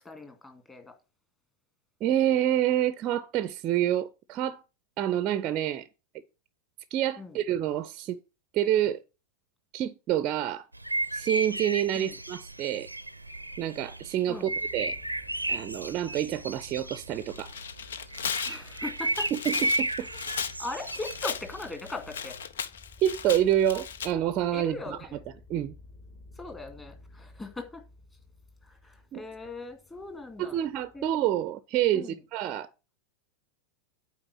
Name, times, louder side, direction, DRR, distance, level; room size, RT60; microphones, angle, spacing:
voice 1, 0.0-0.9 7.2-7.4 11.9-12.2 14.3-14.6 18.4-19.3 20.0-22.4 24.5-25.2 26.4-27.8 28.6-30.6 30.9-31.0 31.9-32.2, left 3 dB, 15° left, 2.1 m, -40 dB
voice 2, 2.0-4.6 5.0-5.9 6.9-8.2 8.5-9.0 9.7-10.7 11.1-12.9 13.6-14.9 15.5-17.5 19.3-20.1 23.0-25.0 25.5-25.7 29.1-29.2 30.4-32.7, right 11 dB, 35° right, 0.5 m, -27 dB
sound 1, 10.7-22.4, right 2 dB, 85° right, 0.6 m, -34 dB
sound 2, 14.5-31.5, left 3 dB, 30° left, 2.1 m, -55 dB
Tearing, 17.2-24.1, left 7 dB, 65° left, 0.6 m, -36 dB
8.8 x 4.6 x 5.9 m
figure-of-eight pair, 90°, 0 cm